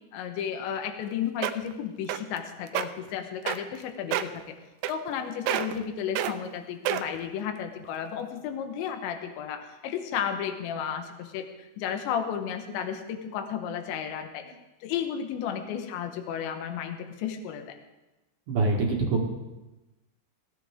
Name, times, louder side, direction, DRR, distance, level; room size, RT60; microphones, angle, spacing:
voice 1, 0.1-4.6 4.9-14.4 14.8-17.8, left 8 dB, 75° left, 6 dB, 3.4 m, -33 dB
sound 1, 1.0-1.1 1.4-1.7 2.1-2.4 2.7-2.9 3.5-3.8 4.1-4.4 4.8-5.2 5.5-5.8 6.2-6.3 6.9-7.2 7.8-7.9, right 12 dB, 90° right, 3.2 m, -28 dB
voice 2, 18.5-19.2, right 3 dB, 55° right, 0 dB, 2.6 m, -24 dB
19.5 x 16.0 x 3.6 m, 1.0 s
omnidirectional pair, 5.3 m